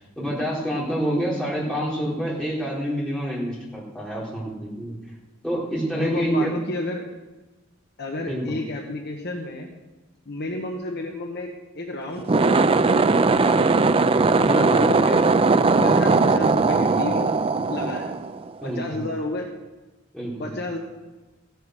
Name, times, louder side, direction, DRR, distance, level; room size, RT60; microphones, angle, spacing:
voice 1, 0.2-5.0 5.4-6.6 8.3-8.6 14.4-14.8 18.6-19.0 20.1-20.5, right 1 dB, 5° left, -6 dB, 4.1 m, -27 dB
voice 2, 5.9-7.0 8.0-9.7 10.3-11.5 11.7-13.8 14.3-15.3 15.8-17.3 17.7-18.2 18.6-19.5 20.4-20.8, left 2 dB, 50° left, 2 dB, 1.3 m, -31 dB
sound 1, 12.2-18.7, right 3 dB, 25° right, 0.4 m, -19 dB
15.5 x 9.4 x 6.5 m, 1.1 s
head